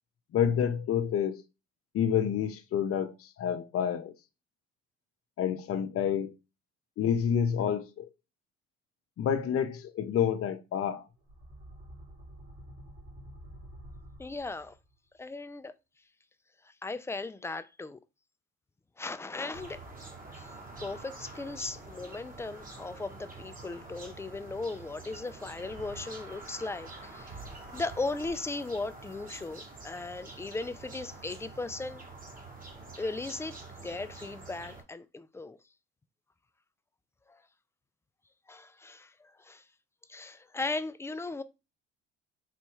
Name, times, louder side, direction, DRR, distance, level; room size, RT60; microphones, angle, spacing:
voice 1, 0.3-1.4 1.9-3.1 3.4-4.1 5.4-6.3 7.0-8.0 9.2-11.0, left 8 dB, 50° left, 0.7 m, -28 dB
sound 1, 11.2-14.9, equal, 65° right, 1.9 m, -49 dB
voice 2, 14.2-14.7 15.2-15.7 16.8-18.0 19.0-19.8 20.4-20.5 20.8-27.3 27.7-32.0 33.0-35.6 37.3-37.4 38.5-39.6 40.1-41.4, left 3 dB, 10° left, 0.3 m, -37 dB
sound 2, 19.5-34.8, right 3 dB, 30° right, 1.1 m, -47 dB
4.1 x 2.2 x 3.0 m
supercardioid pair, 70°, 29 cm